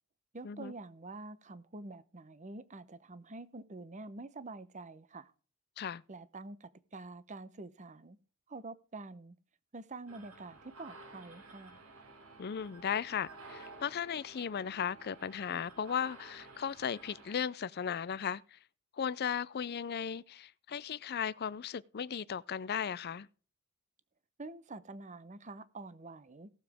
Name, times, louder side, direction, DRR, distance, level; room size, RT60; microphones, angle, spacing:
voice 1, 0.3-5.3 6.1-8.2 8.5-9.4 9.7-11.8 24.4-26.5, right 3 dB, 35° right, 0.8 m, -47 dB
sound 1, 10.1-17.3, right 3 dB, 85° right, 3.0 m, -53 dB
voice 2, 12.4-18.6 18.9-23.3, left 7 dB, 45° left, 0.4 m, -36 dB
18.0 x 7.3 x 3.5 m
head